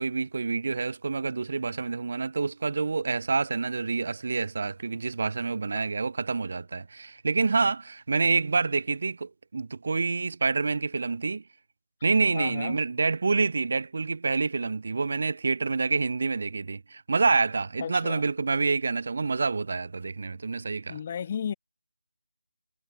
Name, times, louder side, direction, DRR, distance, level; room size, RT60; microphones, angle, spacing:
voice 1, 0.0-11.4 12.0-21.0, right 4 dB, 45° right, 0.4 m, -27 dB
voice 2, 12.3-12.8 17.8-18.2 20.9-21.5, left 8 dB, 25° left, 0.3 m, -34 dB
figure-of-eight pair, 175°, 0 cm